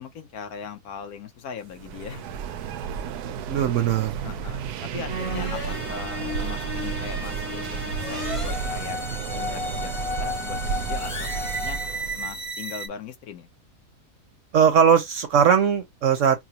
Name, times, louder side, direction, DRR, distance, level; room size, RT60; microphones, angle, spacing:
voice 1, 0.0-2.3 4.2-9.0 9.3-11.8 12.2-13.5, left 7 dB, 70° left, 1.3 m, -39 dB
sound 1, 1.7-12.5, right 7 dB, 80° right, 1.1 m, -32 dB
voice 2, 3.5-4.1 14.5-16.4, right 7 dB, 60° right, 0.9 m, -19 dB
sound 2, 5.1-12.9, left 1 dB, 25° left, 0.8 m, -32 dB
5.9 x 2.0 x 2.9 m
omnidirectional pair, 1.7 m